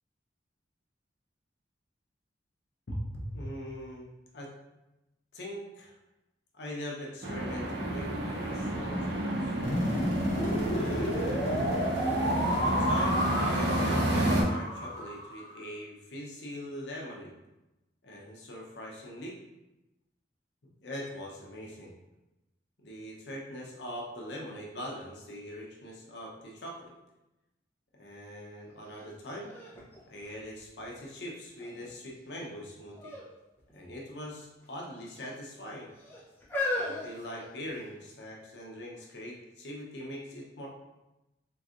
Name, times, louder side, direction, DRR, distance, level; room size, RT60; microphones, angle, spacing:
voice 1, 2.9-4.1 4.3-4.5 5.3-5.9 6.5-9.6 10.7-11.4 12.6-17.3 18.0-19.4 20.8-21.9 22.8-26.9 28.0-29.5 30.1-33.1 33.7-35.9 36.8-40.7, equal, 70° left, -2 dB, 0.7 m, -41 dB
sound 1, 7.2-14.4, right 1 dB, 70° right, 0.6 m, -30 dB
sound 2, 9.6-15.6, equal, 40° left, 1.2 m, -31 dB
sound 3, 28.9-29.0 29.5-31.0 31.6-32.1 32.9-33.3 33.6-33.7 34.6-35.3 36.0-38.0 38.8-38.9, left 2 dB, 10° left, 0.6 m, -37 dB
3.5 x 3.1 x 2.5 m, 0.97 s
head